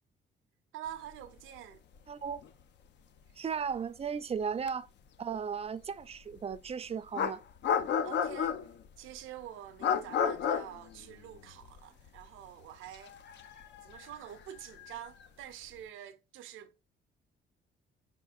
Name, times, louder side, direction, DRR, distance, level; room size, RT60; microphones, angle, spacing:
voice 1, 0.7-1.8 8.0-8.6 9.0-13.2 13.8-16.8, right 11 dB, 85° right, 0.5 m, -47 dB
sound 1, 2.0-2.1 2.3-2.5 4.7-4.8 6.5-6.6 7.1-8.9 9.8-11.8 12.1-12.2 12.9-15.3, left 7 dB, 65° left, 0.5 m, -32 dB
voice 2, 2.1-2.4 3.4-4.9 5.2-7.4, right 6 dB, 30° right, 0.4 m, -36 dB
4.8 x 3.6 x 2.4 m
cardioid pair, 90°, 20 cm